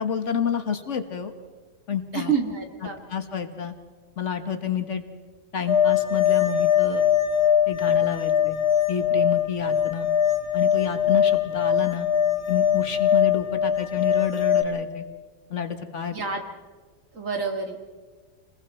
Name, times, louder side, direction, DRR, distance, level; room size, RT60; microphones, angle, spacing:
voice 1, 0.0-1.3 1.9-2.3 3.1-3.7 4.2-5.0 5.5-7.1 7.7-8.6 8.9-10.1 10.5-12.1 12.5-15.0 15.5-16.1, left 8 dB, 55° left, 8 dB, 1.7 m, -29 dB
voice 2, 2.1-3.0 16.1-16.4 17.1-17.8, right 5 dB, 65° right, 3 dB, 2.7 m, -27 dB
sound 1, 5.7-14.6, left 9 dB, 75° left, 2.6 m, -22 dB
29.0 x 21.0 x 4.4 m, 1.4 s
omnidirectional pair, 1.5 m